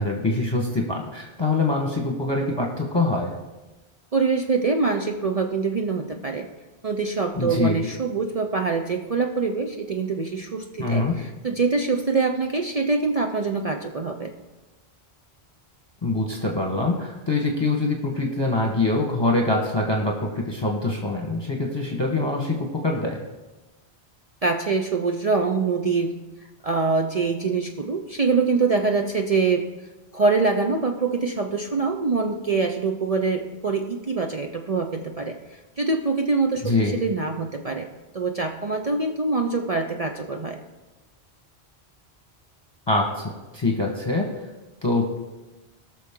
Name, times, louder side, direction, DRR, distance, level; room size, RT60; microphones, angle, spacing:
voice 1, 0.0-3.4 7.3-7.7 10.8-11.2 16.0-23.2 36.6-37.0 42.9-44.5 44.8-45.0, left 2 dB, 25° left, 0 dB, 1.2 m, -24 dB
voice 2, 4.1-6.5 6.8-14.3 24.4-26.1 26.6-29.7 30.1-37.9 38.1-40.6, right 4 dB, 45° right, 4 dB, 0.6 m, -24 dB
18.5 x 6.2 x 3.7 m, 1.1 s
omnidirectional pair, 1.1 m